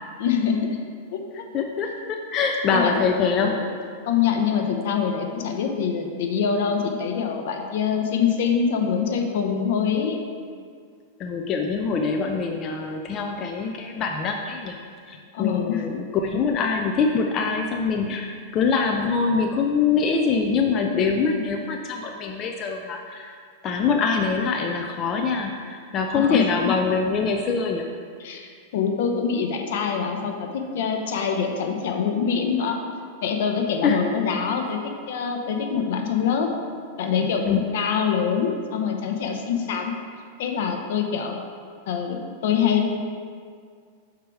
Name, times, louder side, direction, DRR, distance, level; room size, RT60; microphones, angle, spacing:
voice 1, 0.2-0.8 1.1-1.4 2.7-3.1 3.4-3.6 4.0-10.2 15.3-15.8 26.1-26.4 28.2-28.5 28.7-32.8 33.2-36.5 37.0-39.9 40.4-41.4 41.9-43.0, left 7 dB, 65° left, 4 dB, 0.8 m, -24 dB
voice 2, 1.5-3.6 11.2-14.8 15.1-23.3 23.6-27.9 33.8-34.0 37.5-37.7, left 5 dB, 30° left, 3 dB, 0.5 m, -24 dB
6.6 x 4.7 x 4.8 m, 2.1 s
supercardioid pair, 140°, 0 cm